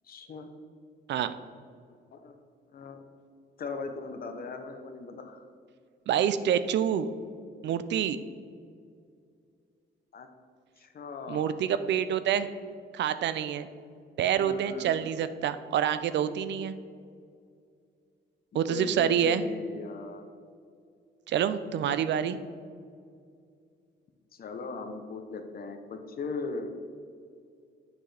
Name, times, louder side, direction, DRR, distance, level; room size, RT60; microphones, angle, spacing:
voice 1, 0.0-0.5 2.1-2.4 2.7-3.0 3.6-5.4 10.1-10.3 10.8-11.6 14.4-15.1 18.7-20.3 24.3-26.7, left 4 dB, 50° left, 6 dB, 0.8 m, -39 dB
voice 2, 6.1-7.1 7.6-8.2 11.3-12.5 12.9-13.7 14.2-16.7 18.5-19.4 21.3-22.4, right 9 dB, 65° right, 12 dB, 0.4 m, -27 dB
7.6 x 6.1 x 3.3 m, 2.3 s
cardioid pair, 90°, 20 cm